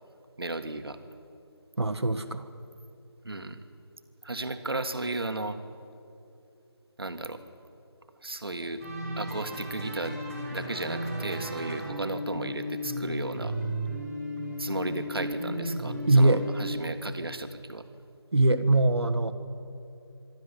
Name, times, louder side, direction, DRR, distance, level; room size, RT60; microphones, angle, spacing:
voice 1, 0.4-1.0 3.2-3.6 4.2-5.6 7.0-7.4 8.2-8.9 9.2-10.2 10.5-13.6 14.6-17.8, right 2 dB, 65° right, 8 dB, 1.8 m, -34 dB
voice 2, 1.8-2.4 16.1-16.4 18.3-19.3, right 2 dB, 80° right, 7 dB, 1.6 m, -22 dB
sound 1, 8.8-16.6, equal, 5° right, 1.6 m, -34 dB
25.5 x 12.5 x 9.9 m, 2.6 s
figure-of-eight pair, 175°, 14 cm